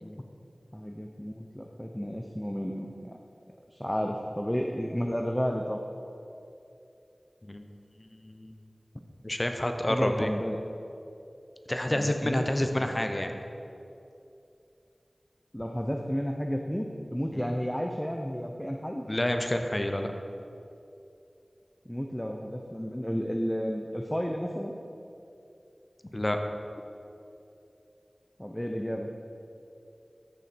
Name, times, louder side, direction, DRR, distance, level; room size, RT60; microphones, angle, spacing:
voice 1, 0.7-3.2 3.7-5.8 9.9-10.6 11.9-12.4 12.8-12.9 15.5-19.1 21.9-24.7 28.4-29.1, equal, 10° left, 2 dB, 0.7 m, -32 dB
voice 2, 8.0-8.5 9.2-10.3 11.7-13.3 17.3-17.4 19.1-20.1 26.1-26.4, left 1 dB, 30° left, 5 dB, 0.9 m, -29 dB
13.5 x 7.0 x 4.5 m, 2.7 s
wide cardioid pair, 45°, 0 cm